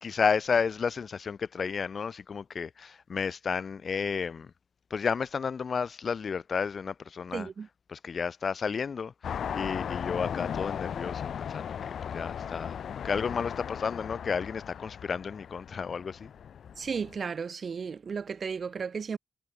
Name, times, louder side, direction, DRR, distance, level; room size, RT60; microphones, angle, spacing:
voice 1, 0.0-4.5 4.9-7.5 7.9-16.3, left 6 dB, 55° left, 6.3 m, -32 dB
voice 2, 7.3-7.7 16.8-19.2, right 6 dB, 55° right, 5.3 m, -34 dB
sound 1, 9.2-17.2, left 8 dB, 75° left, 3.9 m, -37 dB
cardioid pair, 95°, 0 cm